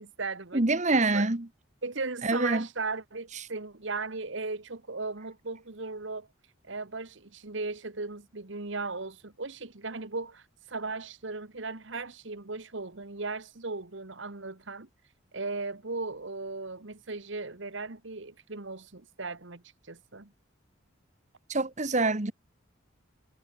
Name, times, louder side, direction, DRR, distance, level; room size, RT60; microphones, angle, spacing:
voice 1, 0.0-0.6 0.9-1.3 1.8-6.3 6.7-14.9 15.3-20.3, right 3 dB, 60° right, 1.5 m, -37 dB
voice 2, 0.5-1.5 2.2-2.7 21.5-22.3, right 2 dB, 35° right, 1.4 m, -25 dB
head